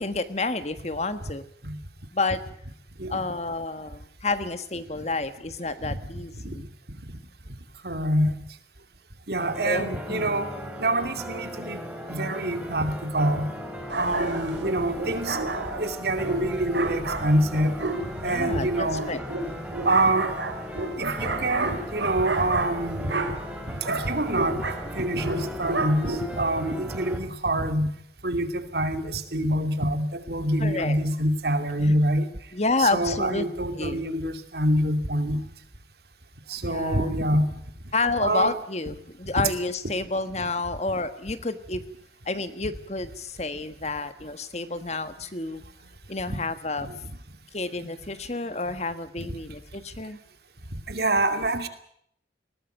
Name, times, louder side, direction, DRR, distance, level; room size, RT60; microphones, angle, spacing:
voice 1, 0.0-1.5 2.1-2.4 3.1-6.6 9.6-10.4 14.1-14.5 18.2-19.2 30.6-31.0 31.8-31.9 32.5-33.5 33.8-34.1 36.6-37.2 37.9-41.8 42.2-45.6 46.1-46.9 47.5-50.2, left 3 dB, 35° left, 12 dB, 1.4 m, -30 dB
voice 2, 7.8-8.4 9.3-10.5 10.8-11.8 12.1-13.5 14.0-15.4 15.8-19.0 19.8-20.3 21.0-23.1 23.7-24.6 24.9-27.9 28.2-32.3 32.8-35.4 36.5-37.5 38.2-38.6 46.3-46.4 46.8-47.0 49.2-49.3 50.9-51.7, right 1 dB, 60° right, 9 dB, 2.6 m, -26 dB
sound 1, 9.4-27.2, equal, 5° right, 3.7 m, -37 dB
sound 2, 13.9-26.5, right 2 dB, 75° right, 3.7 m, -31 dB
21.0 x 18.5 x 9.1 m, 0.69 s
head